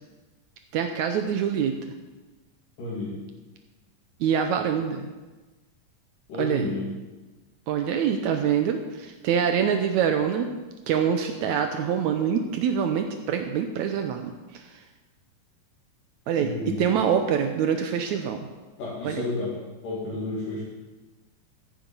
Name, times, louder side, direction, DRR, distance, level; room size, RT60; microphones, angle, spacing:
voice 1, 0.7-1.8 4.2-5.1 6.4-6.7 7.7-10.5 10.9-14.8 16.3-18.5 19.0-19.2, right 8 dB, 75° right, 6 dB, 1.9 m, -25 dB
voice 2, 2.8-3.2 6.3-6.9 16.4-16.8 18.8-19.6 19.8-20.6, left 2 dB, 75° left, -7 dB, 4.1 m, -31 dB
14.5 x 9.0 x 5.4 m, 1.2 s
omnidirectional pair, 3.9 m